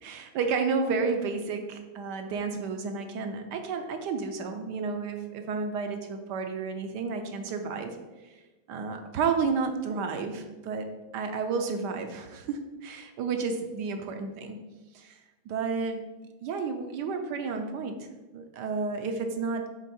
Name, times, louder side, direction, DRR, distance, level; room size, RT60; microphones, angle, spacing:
voice 1, 0.0-7.9 8.7-10.8 11.1-14.6 14.9-15.2 15.5-16.0 16.4-18.0 18.3-19.7, right 5 dB, 70° right, 6 dB, 1.0 m, -31 dB
7.2 x 3.8 x 4.3 m, 1.2 s
omnidirectional pair, 2.2 m